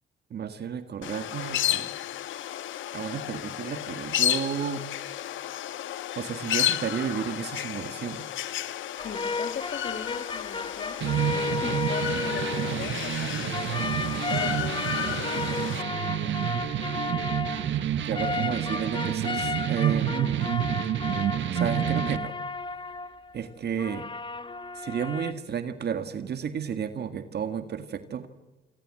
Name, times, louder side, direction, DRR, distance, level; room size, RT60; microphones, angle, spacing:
voice 1, 0.3-1.9 2.4-2.5 2.9-4.9 6.2-8.3 18.0-20.6 21.5-22.3 23.3-24.1 24.7-28.3, right 7 dB, 55° right, 9 dB, 1.9 m, -32 dB
sound 1, 1.0-15.8, left 11 dB, 75° left, 1.3 m, -32 dB
voice 2, 9.0-11.0 11.3-13.5 14.3-16.4 16.9-17.0, left 6 dB, 55° left, 9 dB, 2.7 m, -39 dB
Last Post, 9.0-13.3 13.5-23.4 23.8-25.3, left 3 dB, 25° left, 1.0 m, -34 dB
sound 2, 11.0-22.2, right 11 dB, 70° right, 1.4 m, -29 dB
28.5 x 24.5 x 7.7 m, 1.2 s
cardioid pair, 90°, 20 cm